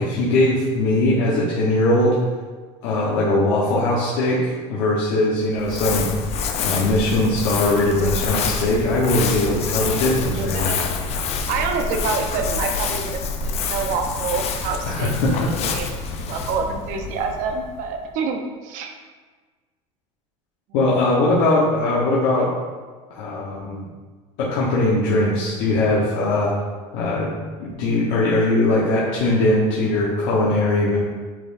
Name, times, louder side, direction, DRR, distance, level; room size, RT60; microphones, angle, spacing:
voice 1, 0.0-2.1 2.8-6.1 6.6-10.7 14.9-15.7 20.7-22.5 23.1-23.8 24.4-26.5 26.9-27.3 27.6-31.0, left 2 dB, 70° left, -6 dB, 1.3 m, -20 dB
Crumpling crinkling, 5.6-18.0, left 5 dB, 40° left, 0.7 m, -27 dB
voice 2, 10.1-11.0 11.5-15.1 15.6-18.9, right 5 dB, 60° right, 4 dB, 0.9 m, -27 dB
8.8 x 4.4 x 2.7 m, 1.4 s
supercardioid pair, 125°, 16 cm